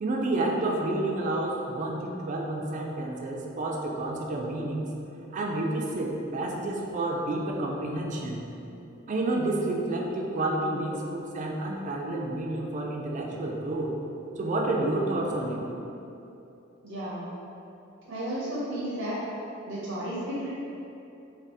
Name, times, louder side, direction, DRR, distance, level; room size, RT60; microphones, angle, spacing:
voice 1, 0.0-4.9 5.3-8.5 9.1-14.0 14.3-15.7, right 2 dB, 40° right, 0 dB, 0.3 m, -29 dB
voice 2, 16.8-17.3 18.1-19.2 19.7-20.5, right 1 dB, 80° right, -8 dB, 0.6 m, -33 dB
2.6 x 2.3 x 3.4 m, 2.9 s
head